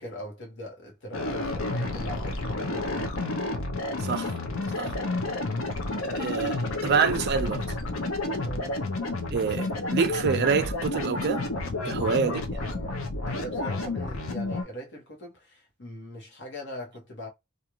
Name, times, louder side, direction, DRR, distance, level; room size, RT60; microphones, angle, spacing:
voice 1, 0.0-3.1 8.4-8.8 12.2-17.3, equal, 60° left, 1.2 m, -41 dB
sound 1, 1.1-14.6, left 2 dB, 75° left, 0.7 m, -30 dB
voice 2, 4.0-4.4 4.7-4.9 6.1-7.6 9.3-11.4 11.8-12.4, right 5 dB, 55° right, 0.4 m, -26 dB
2.5 x 2.5 x 2.9 m
head